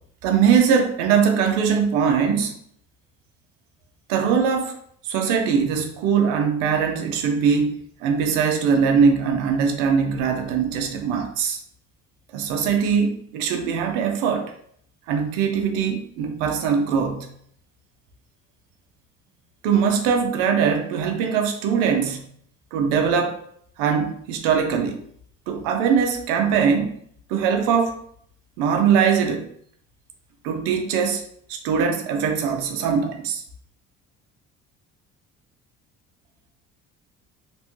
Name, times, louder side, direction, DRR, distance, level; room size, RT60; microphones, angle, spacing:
voice 1, 0.2-2.6 4.1-4.8 5.0-11.6 12.3-14.5 15.1-17.3 19.6-22.3 22.7-23.4 23.8-25.0 25.5-27.0 27.3-28.0 28.6-29.5 30.4-33.4, right 6 dB, 90° right, 4 dB, 0.6 m, -21 dB
3.0 x 2.1 x 3.0 m, 0.64 s
supercardioid pair, 90°, 31 cm